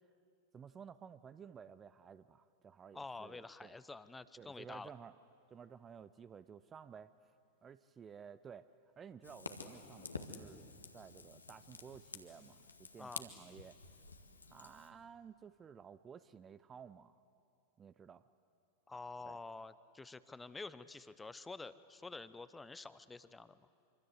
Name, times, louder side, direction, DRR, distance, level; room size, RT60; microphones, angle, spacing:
voice 1, 0.5-3.8 4.4-5.1 5.5-7.3 7.6-8.7 9.0-13.8 14.5-17.2 17.8-18.2 19.3-19.4, right 7 dB, 20° right, 14 dB, 0.6 m, -54 dB
voice 2, 2.9-4.9 13.0-13.3 18.9-23.6, left 3 dB, 10° left, 15 dB, 0.8 m, -49 dB
Fire, 9.2-14.9, left 4 dB, 80° left, 1.7 m, -50 dB
25.5 x 25.0 x 8.1 m, 2.9 s
figure-of-eight pair, 90°, 0 cm